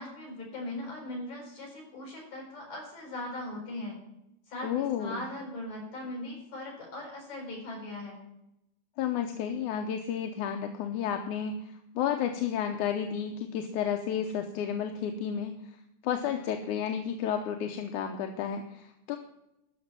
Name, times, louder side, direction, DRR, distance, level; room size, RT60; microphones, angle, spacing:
voice 1, 0.0-4.0 4.5-8.2, left 1 dB, 60° left, 0 dB, 7.4 m, -39 dB
voice 2, 4.6-5.2 9.0-15.5 16.0-19.2, left 8 dB, 80° left, 5 dB, 2.4 m, -32 dB
13.5 x 6.1 x 8.9 m, 0.85 s
omnidirectional pair, 3.6 m